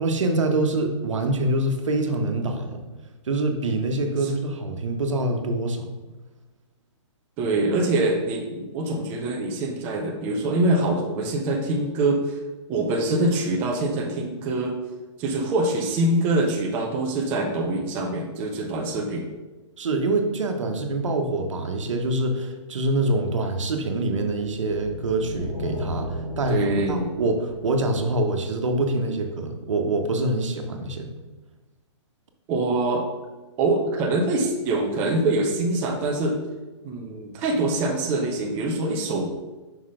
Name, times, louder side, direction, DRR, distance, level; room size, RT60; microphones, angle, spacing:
voice 1, 0.0-2.8 3.2-5.8 19.8-31.1, right 2 dB, 80° right, 4 dB, 1.0 m, -25 dB
voice 2, 7.4-12.4 12.7-14.8 15.2-19.3 26.5-27.1 32.5-33.0 33.6-36.4 36.8-39.3, right 2 dB, 10° right, 0 dB, 0.4 m, -24 dB
sound 1, 24.4-28.7, left 2 dB, 40° left, 1.8 m, -35 dB
5.5 x 3.8 x 4.9 m, 1.2 s
hypercardioid pair, 165°, 16 cm